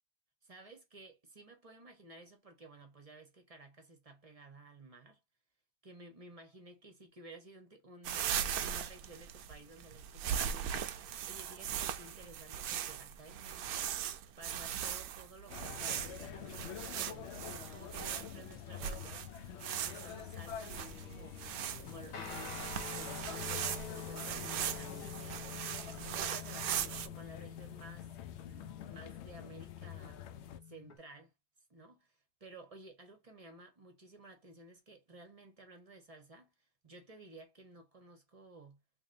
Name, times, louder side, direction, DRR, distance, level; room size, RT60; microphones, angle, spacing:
voice 1, 0.4-5.2 5.8-8.3 8.6-17.3 17.7-19.2 19.7-21.4 21.8-25.4 26.0-28.1 28.4-30.2 30.6-31.3 31.7-36.5 36.8-38.8, right 2 dB, 30° right, 0.8 m, -55 dB
sound 1, 8.0-27.1, right 9 dB, 80° right, 1.0 m, -39 dB
sound 2, 15.5-30.6, left 9 dB, 65° left, 0.7 m, -47 dB
Guitar, 22.1-30.9, left 7 dB, 85° left, 1.7 m, -47 dB
3.4 x 3.2 x 2.5 m
omnidirectional pair, 1.5 m